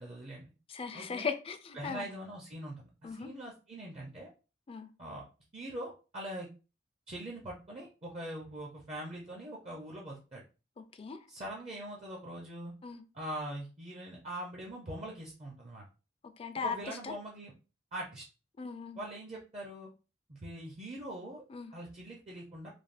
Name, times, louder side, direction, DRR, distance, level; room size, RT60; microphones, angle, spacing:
voice 1, 0.0-0.5 0.9-1.3 1.7-4.3 5.0-5.2 5.5-6.5 7.1-10.4 11.3-12.7 13.1-15.9 16.5-17.5 17.9-18.2 19.0-19.9 20.3-21.4 21.7-22.7, right 1 dB, 35° right, 0.5 m, -42 dB
voice 2, 0.7-2.1 3.0-3.3 4.7-4.9 10.8-11.3 12.8-13.0 16.4-17.1 18.6-19.0 21.5-21.7, left 5 dB, 30° left, 0.3 m, -38 dB
3.3 x 2.1 x 2.5 m
head